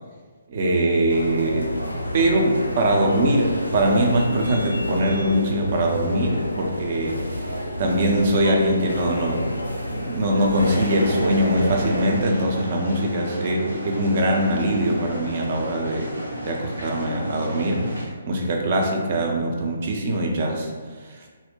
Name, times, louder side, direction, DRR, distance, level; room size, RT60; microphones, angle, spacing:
voice 1, 0.5-1.8 2.1-7.5 7.8-9.5 9.9-16.1 16.4-17.9 18.3-20.7, right 1 dB, 45° right, 0 dB, 0.5 m, -22 dB
sound 1, 1.1-12.2, left 1 dB, 85° left, 0.4 m, -29 dB
sound 2, 10.6-18.0, equal, 90° right, 0.7 m, -32 dB
2.5 x 2.1 x 3.6 m, 1.5 s
figure-of-eight pair, 135°, 0 cm